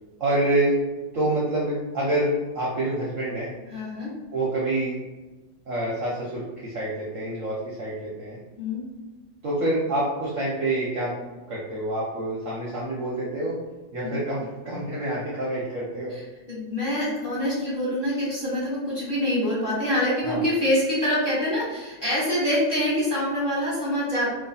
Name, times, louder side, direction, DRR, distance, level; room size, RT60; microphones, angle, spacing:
voice 1, 0.2-0.8 1.1-3.5 4.3-5.0 5.7-8.4 9.4-13.5 13.9-16.1 20.2-20.4, right 1 dB, 60° right, -6 dB, 0.8 m, -27 dB
voice 2, 3.7-4.1 8.6-8.8 14.0-14.2 16.1-16.2 16.5-24.3, left 1 dB, 35° left, -9 dB, 1.1 m, -25 dB
3.1 x 2.4 x 4.0 m, 1.2 s
omnidirectional pair, 2.0 m